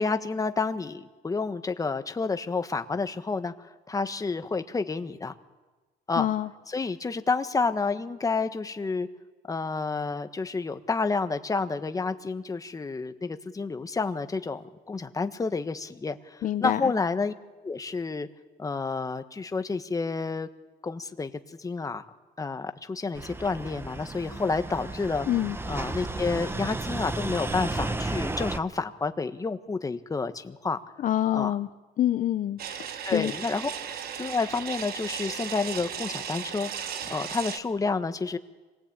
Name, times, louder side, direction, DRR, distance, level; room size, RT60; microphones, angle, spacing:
voice 1, 0.0-3.5 3.9-5.3 6.1-6.3 6.7-9.1 9.5-17.3 17.6-18.3 18.6-20.5 20.8-21.3 21.6-22.0 22.4-25.3 25.7-30.8 31.3-31.5 33.0-33.7 34.2-38.4, left 4 dB, 20° left, 9 dB, 1.4 m, -29 dB
voice 2, 6.2-6.5 16.4-16.9 25.3-25.6 31.0-31.7 32.0-33.3, left 12 dB, 50° left, 10 dB, 0.7 m, -26 dB
sound 1, 23.1-28.6, right 2 dB, 15° right, 1.0 m, -33 dB
sound 2, 32.6-37.6, right 8 dB, 65° right, 1.4 m, -36 dB
26.5 x 19.0 x 8.9 m, 1.3 s
cardioid pair, 110°, 17 cm